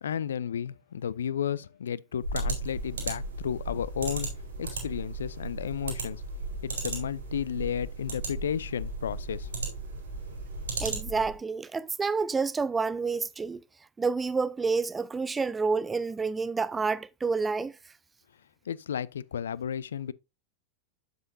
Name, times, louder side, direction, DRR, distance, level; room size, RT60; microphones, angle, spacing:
voice 1, 0.0-4.3 4.6-6.2 6.6-9.8 18.7-20.1, left 8 dB, 65° left, 0.4 m, -33 dB
sound 1, 2.2-11.4, right 3 dB, 70° right, 3.5 m, -35 dB
voice 2, 10.8-13.6 14.0-17.8, right 4 dB, 15° right, 0.3 m, -29 dB
7.8 x 7.7 x 2.6 m
figure-of-eight pair, 90°, 0 cm